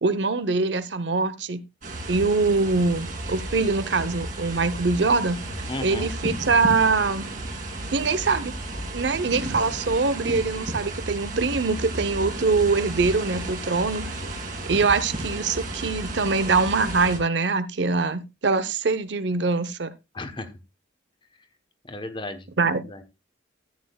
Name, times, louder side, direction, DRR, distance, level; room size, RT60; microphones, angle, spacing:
voice 1, 0.0-1.6 2.1-5.4 5.8-7.3 7.9-8.5 8.9-14.0 14.7-19.9 22.6-22.8, right 4 dB, 65° right, 14 dB, 0.7 m, -23 dB
sound 1, 1.8-17.2, right 2 dB, 45° right, 2.3 m, -33 dB
voice 2, 5.7-6.1 20.1-20.5 21.8-23.0, left 2 dB, 25° left, 10 dB, 0.9 m, -35 dB
13.5 x 8.7 x 2.3 m, 0.23 s
head